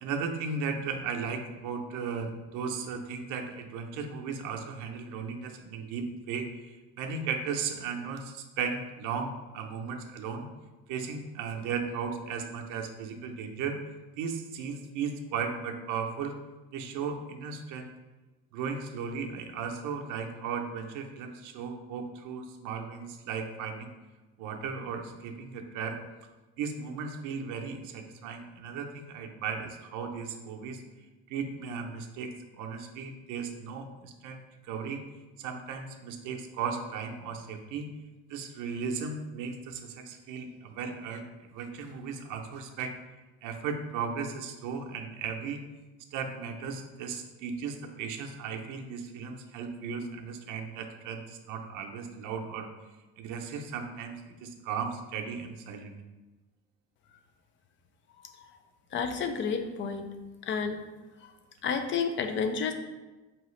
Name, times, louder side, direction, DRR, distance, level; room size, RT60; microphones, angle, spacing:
voice 1, 0.0-10.5 10.9-13.8 14.2-16.3 16.7-17.9 18.5-23.9 24.4-26.0 26.6-30.8 31.3-35.0 35.4-37.9 38.3-42.9 43.4-45.6 46.1-52.7 53.2-55.9, right 5 dB, 75° right, 3 dB, 0.6 m, -36 dB
voice 2, 58.9-60.1 60.4-60.8 61.2-61.3 61.6-62.7, left 6 dB, 40° left, 7 dB, 0.4 m, -31 dB
4.8 x 3.0 x 3.1 m, 1.2 s
cardioid pair, 145°, 31 cm